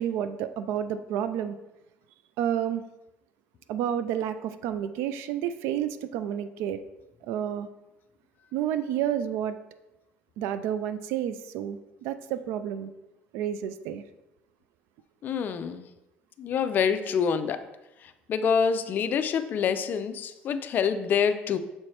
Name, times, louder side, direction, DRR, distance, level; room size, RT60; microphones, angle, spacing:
voice 1, 0.0-1.6 2.4-2.8 3.7-6.8 7.2-7.7 8.5-9.6 10.4-12.9 13.3-14.0, right 10 dB, 85° right, 12 dB, 0.4 m, -30 dB
voice 2, 15.2-15.8 16.4-17.6 18.3-21.6, left 6 dB, 45° left, 9 dB, 0.4 m, -26 dB
7.0 x 4.3 x 3.2 m, 0.96 s
cardioid pair, 130°, 4 cm